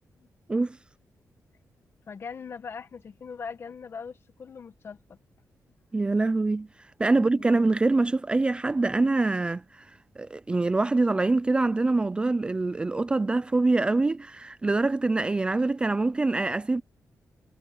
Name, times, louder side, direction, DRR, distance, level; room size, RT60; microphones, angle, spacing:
voice 1, 2.1-5.2 7.1-7.7, left 6 dB, 45° left, 1.1 m, -41 dB
voice 2, 5.9-6.7 7.0-9.9 10.2-16.8, right 3 dB, 15° right, 0.3 m, -24 dB
wide cardioid pair, 175°, 6 cm